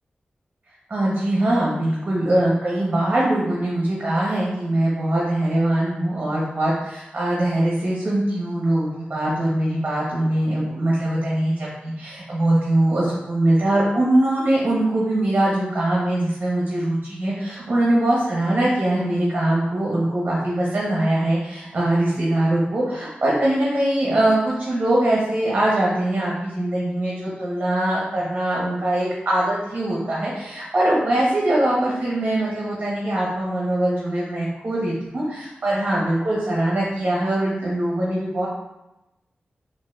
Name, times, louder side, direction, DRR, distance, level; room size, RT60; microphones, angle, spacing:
voice 1, 0.9-38.5, right 1 dB, 50° right, -5 dB, 0.7 m, -22 dB
3.9 x 2.5 x 2.2 m, 0.93 s
wide cardioid pair, 80°, 4 cm